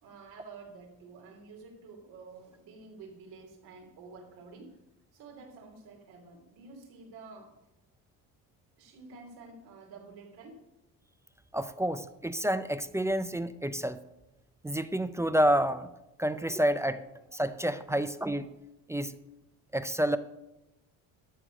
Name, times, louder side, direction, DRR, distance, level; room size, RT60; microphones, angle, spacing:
voice 1, 0.0-4.8 5.1-7.5 8.8-10.6 17.9-18.0, right 4 dB, 85° right, 1 dB, 3.2 m, -50 dB
voice 2, 11.5-14.0 14.6-15.9 16.2-17.0 17.3-18.5 18.9-19.1 19.7-20.2, right 1 dB, 10° right, 12 dB, 0.4 m, -29 dB
12.0 x 6.6 x 6.2 m, 0.93 s
cardioid pair, 115°, 37 cm